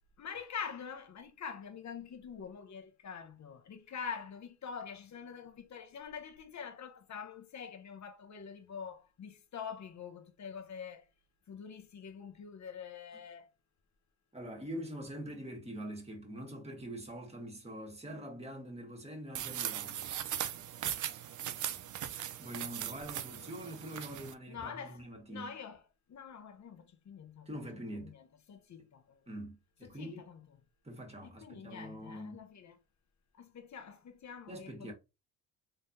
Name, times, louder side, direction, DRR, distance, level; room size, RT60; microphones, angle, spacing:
voice 1, 0.2-11.1 11.5-13.5 24.5-25.0 25.3-25.8 26.1-29.2 29.8-30.5 31.2-32.8 33.4-34.9, left 6 dB, 45° left, 1.0 m, -45 dB
voice 2, 14.3-20.1 22.4-25.5 27.4-28.1 29.3-30.3 30.8-32.4 34.5-34.9, equal, 15° right, 1.7 m, -44 dB
sound 1, 19.3-24.3, right 11 dB, 50° right, 0.6 m, -39 dB
3.8 x 3.2 x 2.7 m
cardioid pair, 80°, 40 cm